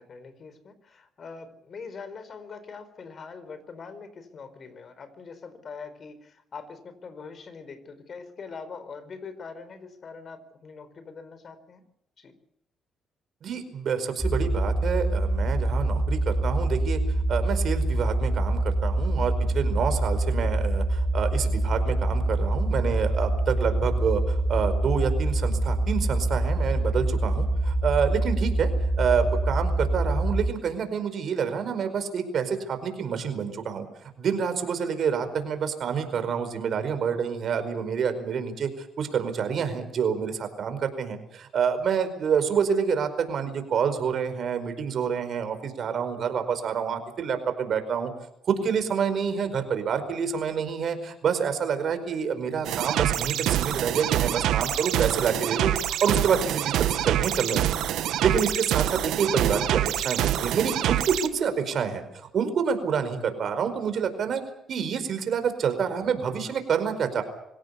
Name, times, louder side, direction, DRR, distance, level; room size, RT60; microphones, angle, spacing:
voice 1, 0.0-11.8 12.2-12.3, left 5 dB, 50° left, 12 dB, 4.5 m, -43 dB
voice 2, 13.4-17.0 17.3-28.7 29.0-33.9 34.2-48.1 48.4-57.7 58.2-64.4 64.7-67.2, right 6 dB, 60° right, 9 dB, 4.9 m, -27 dB
sound 1, 14.2-30.5, right 1 dB, ahead, 2.8 m, -25 dB
sound 2, 52.6-61.3, right 12 dB, 85° right, 1.4 m, -26 dB
25.5 x 17.0 x 8.3 m, 0.79 s
cardioid pair, 90°, 0 cm